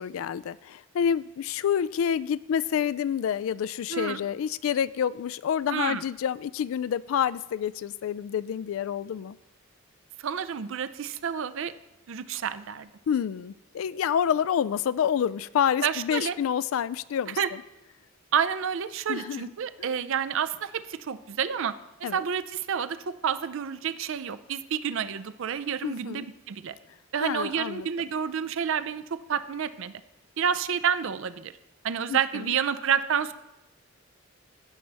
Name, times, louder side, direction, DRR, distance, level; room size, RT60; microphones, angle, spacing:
voice 1, 0.0-9.4 13.1-17.6 19.1-19.5 19.8-19.9 22.0-22.2 25.8-26.2 27.2-27.9 32.1-32.5, left 8 dB, 65° left, 19 dB, 0.3 m, -28 dB
voice 2, 5.7-6.0 10.2-11.7 12.1-12.9 15.8-16.3 17.4-17.5 18.3-21.7 22.1-26.8 27.1-29.9 30.4-31.5 31.8-33.3, right 7 dB, 65° right, 13 dB, 0.4 m, -29 dB
15.5 x 6.5 x 3.4 m, 0.94 s
head